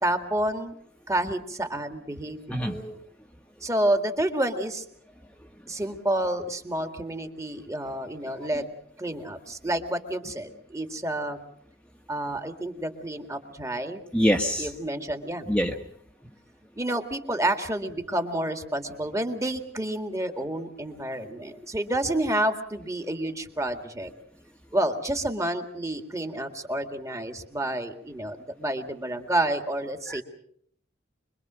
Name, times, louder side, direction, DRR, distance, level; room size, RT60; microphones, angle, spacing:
voice 1, 0.0-0.8 1.1-2.7 3.6-4.8 5.7-8.7 9.0-11.4 12.1-14.0 14.6-15.4 16.8-24.1 24.7-30.2, right 1 dB, 15° right, 6 dB, 2.0 m, -29 dB
voice 2, 2.5-2.9 8.3-8.5 14.1-14.7 15.5-15.7 30.1-30.2, equal, 5° left, 2 dB, 1.3 m, -25 dB
25.5 x 23.0 x 6.3 m, 0.68 s
head